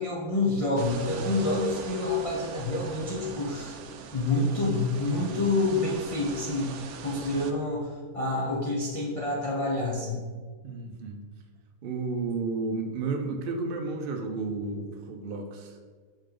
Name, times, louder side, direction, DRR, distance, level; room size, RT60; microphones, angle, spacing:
voice 1, 0.0-3.8 4.1-6.7 7.0-10.2, left 2 dB, 35° left, -4 dB, 0.6 m, -28 dB
sound 1, 0.8-7.5, right 6 dB, 75° right, 1.0 m, -41 dB
voice 2, 10.6-11.2 11.8-15.8, right 3 dB, 55° right, 3 dB, 0.6 m, -32 dB
5.5 x 5.1 x 3.8 m, 1.5 s
omnidirectional pair, 1.6 m